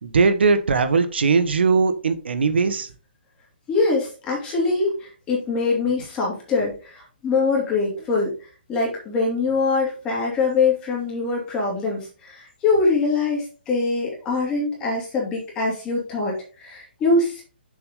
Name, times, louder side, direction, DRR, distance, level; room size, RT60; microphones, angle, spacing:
voice 1, 0.0-2.9, right 4 dB, 80° right, 10 dB, 1.2 m, -19 dB
voice 2, 3.7-17.4, left 3 dB, 15° left, -3 dB, 2.7 m, -23 dB
7.1 x 6.3 x 3.7 m, 0.35 s
hypercardioid pair, 170°, 6 cm